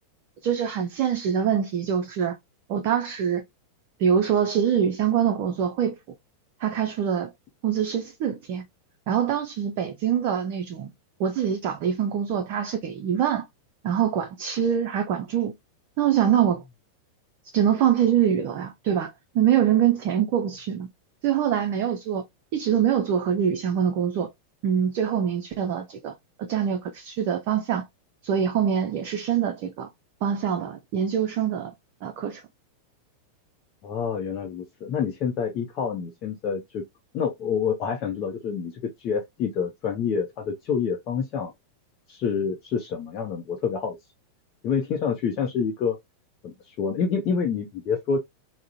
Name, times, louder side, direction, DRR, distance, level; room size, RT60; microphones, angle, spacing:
voice 1, 0.4-2.4 2.7-3.4 4.0-6.0 6.6-7.3 7.6-8.6 9.1-10.9 11.2-13.4 13.8-15.5 16.0-16.6 17.5-20.9 21.2-22.2 22.5-24.3 24.6-26.1 26.4-27.9 28.2-29.9 30.2-31.7 32.0-32.4, right 9 dB, 45° right, 0.4 m, -24 dB
voice 2, 33.8-36.8 37.1-38.7 39.0-41.5 42.1-44.0 44.6-46.0 46.4-48.2, left 6 dB, 40° left, 0.6 m, -27 dB
3.6 x 2.1 x 2.7 m
figure-of-eight pair, 90°, 0 cm